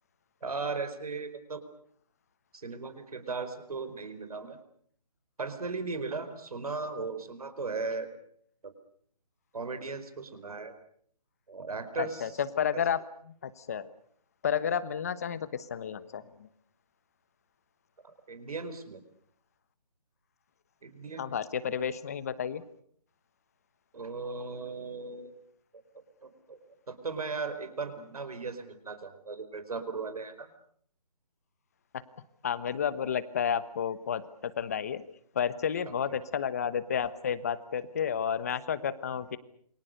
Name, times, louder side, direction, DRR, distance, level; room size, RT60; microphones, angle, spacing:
voice 1, 0.4-1.6 2.5-4.6 5.4-8.1 8.6-8.7 9.5-10.7 11.5-12.3 12.7-12.8 18.0-19.0 20.8-21.2 23.9-25.4 26.2-30.5 36.1-36.2, right 4 dB, 60° right, 11 dB, 4.7 m, -37 dB
voice 2, 12.0-13.0 13.4-13.9 14.4-16.2 21.2-22.6 32.4-35.0 35.3-39.4, left 8 dB, 25° left, 15 dB, 1.1 m, -31 dB
28.5 x 25.5 x 6.6 m, 0.62 s
hypercardioid pair, 170°, 21 cm